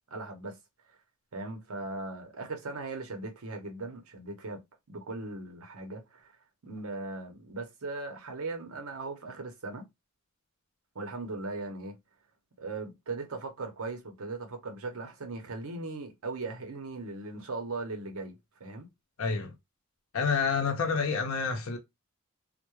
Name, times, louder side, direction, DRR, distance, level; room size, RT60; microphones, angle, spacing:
voice 1, 0.1-0.6 1.3-4.6 4.9-6.3 6.6-9.9 10.9-12.0 12.6-18.9, right 3 dB, 85° right, 0.7 m, -38 dB
voice 2, 19.2-19.5 20.1-21.8, left 5 dB, 75° left, 0.6 m, -28 dB
2.3 x 2.1 x 2.9 m
head